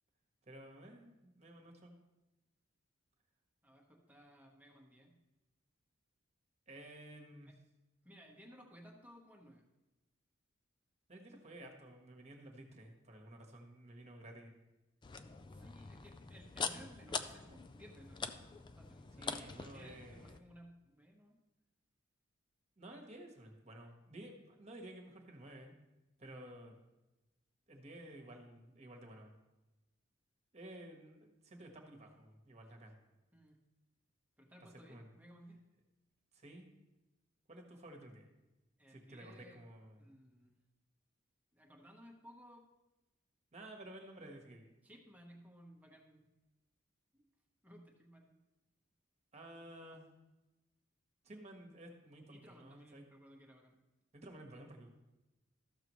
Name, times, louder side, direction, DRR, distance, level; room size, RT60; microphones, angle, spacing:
voice 1, 0.5-1.9 3.9-4.0 6.7-7.5 11.1-14.5 19.2-20.4 22.8-25.7 26.2-26.8 27.7-29.3 30.5-32.9 34.9-35.1 36.3-36.7 37.5-38.3 38.9-40.1 43.5-44.8 49.3-50.1 51.2-53.0 54.1-54.9, right 1 dB, 35° right, 2 dB, 1.3 m, -53 dB
voice 2, 3.6-5.2 7.5-7.6 8.0-9.6 15.5-18.4 18.8-21.4 22.9-23.0 33.3-33.6 34.4-35.6 38.8-39.6 40.0-40.6 41.5-42.6 44.8-46.3 47.1-47.3 47.6-48.4 52.2-53.7, equal, 10° right, 0 dB, 1.1 m, -59 dB
sound 1, 15.0-20.4, left 5 dB, 25° left, 0.3 m, -44 dB
13.5 x 6.7 x 3.1 m, 1.0 s
head